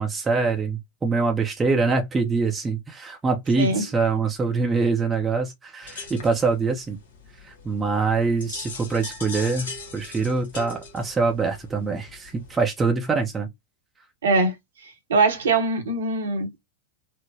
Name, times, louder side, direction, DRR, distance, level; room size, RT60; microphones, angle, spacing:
voice 1, 0.0-7.0 7.4-13.5, right 4 dB, 15° right, 0.7 m, -24 dB
sound 1, 5.8-12.7, left 4 dB, 60° left, 1.1 m, -40 dB
voice 2, 14.2-14.6 14.8-16.6, right 3 dB, 65° right, 1.0 m, -22 dB
3.7 x 2.0 x 2.7 m
figure-of-eight pair, 90°, 0 cm